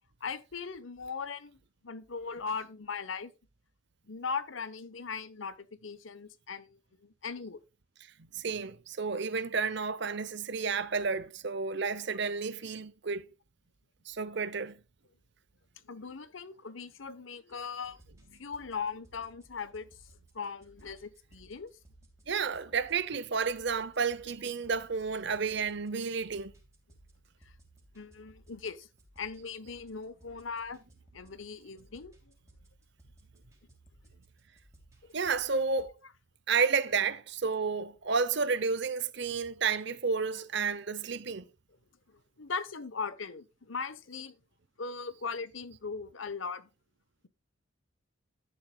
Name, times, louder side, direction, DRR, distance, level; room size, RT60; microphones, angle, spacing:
voice 1, 0.2-1.6 1.8-3.3 4.0-7.6 15.8-18.0 18.3-19.9 20.3-21.7 27.4-27.5 27.9-28.9 29.2-30.8 31.1-32.3 35.0-35.1 42.1-44.4 44.8-46.7, left 5 dB, 75° left, 1.0 m, -39 dB
voice 2, 8.2-13.3 14.1-14.8 22.3-26.5 35.1-35.9 36.5-41.5, right 5 dB, 60° right, 0.8 m, -31 dB
sound 1, 17.5-35.9, right 1 dB, 15° right, 3.0 m, -61 dB
12.0 x 10.5 x 2.3 m
head